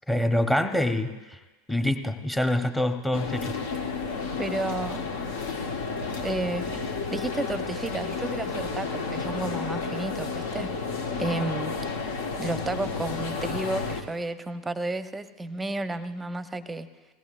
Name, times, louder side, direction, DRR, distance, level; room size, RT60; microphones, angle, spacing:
voice 1, 0.1-1.1 1.7-3.6, left 1 dB, 5° left, 6 dB, 1.1 m, -25 dB
sound 1, 3.1-14.0, left 4 dB, 65° left, 1.4 m, -31 dB
voice 2, 4.4-5.0 6.2-6.7 7.1-10.7 11.2-11.7 12.4-16.9, right 2 dB, 10° right, 12 dB, 0.8 m, -32 dB
20.5 x 17.0 x 2.5 m, 1.2 s
figure-of-eight pair, 85°, 0 cm